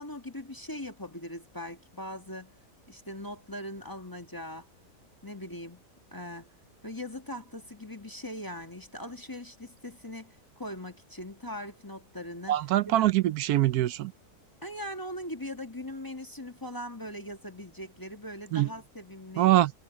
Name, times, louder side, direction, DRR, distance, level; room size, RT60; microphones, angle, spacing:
voice 1, 0.0-2.5 2.9-4.7 5.2-5.8 6.1-6.5 6.8-12.6 12.9-13.0 14.6-19.5, left 1 dB, 15° left, 1.4 m, -40 dB
voice 2, 12.5-14.1 18.5-18.7 19.4-19.7, right 14 dB, 80° right, 1.1 m, -23 dB
omnidirectional pair, 1.6 m